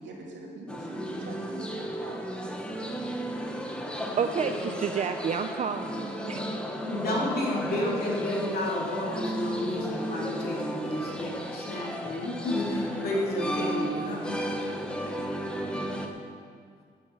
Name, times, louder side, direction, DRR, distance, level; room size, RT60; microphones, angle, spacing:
voice 1, 0.0-2.5, right 2 dB, 85° right, -2 dB, 2.5 m, -43 dB
sound 1, 0.7-16.1, equal, 5° left, 0.9 m, -34 dB
voice 2, 4.0-6.4, right 6 dB, 40° right, 7 dB, 0.4 m, -30 dB
voice 3, 6.9-14.4, left 1 dB, 55° left, -3 dB, 2.7 m, -31 dB
10.0 x 9.4 x 6.8 m, 2.1 s
wide cardioid pair, 165°, 19 cm